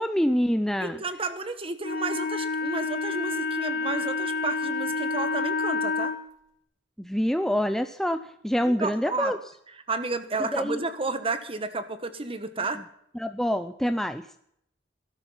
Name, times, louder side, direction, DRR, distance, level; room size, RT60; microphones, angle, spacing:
voice 1, 0.0-1.0 7.0-9.4 10.4-10.8 13.1-14.4, equal, ahead, 9 dB, 0.5 m, -26 dB
voice 2, 0.8-6.1 8.6-9.3 9.9-12.8, right 3 dB, 30° right, 10 dB, 1.3 m, -31 dB
Wind instrument woodwind instrument, 1.8-6.2, left 4 dB, 55° left, 3.5 m, -29 dB
17.5 x 12.5 x 5.7 m, 0.72 s
head